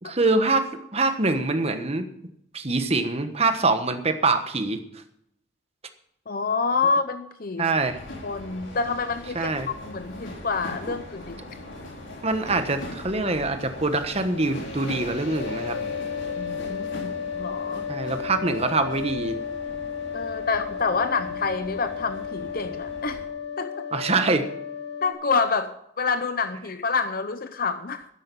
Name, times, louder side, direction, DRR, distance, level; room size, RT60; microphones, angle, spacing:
voice 1, 0.0-2.1 2.5-4.8 7.6-8.0 9.3-9.7 12.2-15.8 17.9-19.4 23.9-24.4, right 3 dB, 35° right, 8 dB, 1.3 m, -24 dB
voice 2, 6.3-7.7 8.2-9.5 9.8-11.4 16.4-17.8 20.1-23.2 23.6-23.9 25.0-28.1, left 4 dB, 50° left, 10 dB, 0.7 m, -27 dB
sound 1, 7.8-23.3, left 1 dB, 90° left, 4.3 m, -40 dB
sound 2, 15.4-25.1, left 7 dB, 75° left, 2.3 m, -33 dB
12.5 x 10.5 x 5.4 m, 0.73 s
head